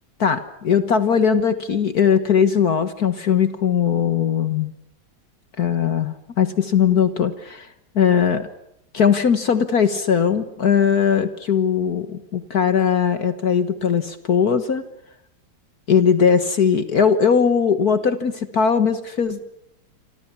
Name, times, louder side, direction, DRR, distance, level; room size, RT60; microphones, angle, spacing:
voice 1, 0.2-4.7 5.6-7.7 7.9-8.5 8.9-14.8 15.9-19.4, left 7 dB, 50° left, 11 dB, 1.7 m, -19 dB
28.0 x 25.0 x 7.2 m, 0.77 s
omnidirectional pair, 2.2 m